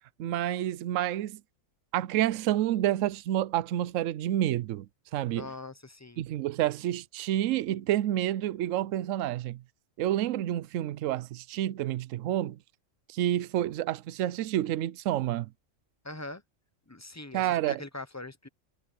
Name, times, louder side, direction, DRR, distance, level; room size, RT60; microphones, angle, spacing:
voice 1, 0.2-1.4 1.9-4.9 5.1-5.5 6.2-9.6 10.0-12.6 13.1-15.5 17.3-17.8, right 13 dB, 75° right, 0.9 m, -29 dB
voice 2, 5.3-6.3 16.0-16.4 16.9-18.5, left 2 dB, 15° left, 0.9 m, -42 dB
omnidirectional pair, 1.4 m